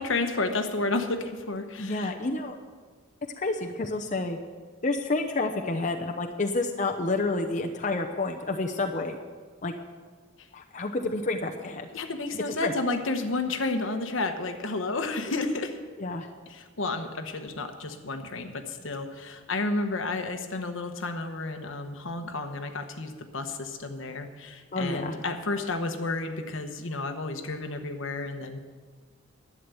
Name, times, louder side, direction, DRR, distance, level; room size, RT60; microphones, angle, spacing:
voice 1, 0.0-2.1 11.9-15.8 16.5-28.6, left 3 dB, 75° left, 7 dB, 1.1 m, -31 dB
voice 2, 1.8-2.6 3.4-4.4 4.8-9.2 9.6-9.7 10.5-11.9 12.6-12.7 16.0-16.3 24.7-25.2, left 2 dB, 40° left, 3 dB, 0.8 m, -29 dB
11.0 x 9.6 x 7.0 m, 1.5 s
head